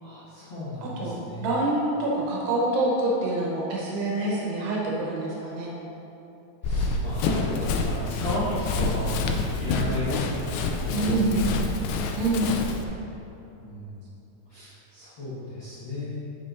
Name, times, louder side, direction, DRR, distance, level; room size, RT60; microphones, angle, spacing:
voice 1, 0.0-1.4 6.6-9.2 9.6-11.4 13.6-14.0 14.5-16.2, left 1 dB, 50° left, -13 dB, 1.4 m, -33 dB
voice 2, 0.8-5.7 9.7-10.0 10.9-11.5 12.2-12.7, right 2 dB, 80° right, -4 dB, 3.1 m, -26 dB
Run, 6.6-12.8, left 3 dB, 85° left, 2.1 m, -28 dB
9.9 x 6.5 x 2.7 m, 2.9 s
omnidirectional pair, 4.7 m